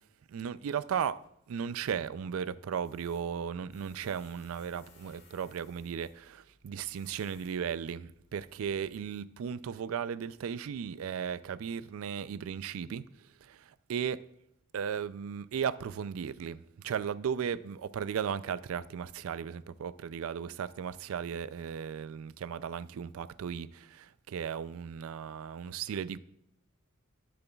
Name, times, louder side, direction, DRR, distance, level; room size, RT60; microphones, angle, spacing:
voice 1, 0.3-1.2 1.5-14.2 14.7-26.2, right 7 dB, 70° right, 0.3 m, -36 dB
Tools, 2.8-9.0, left 3 dB, 50° left, 1.7 m, -63 dB
14.0 x 6.8 x 2.3 m
head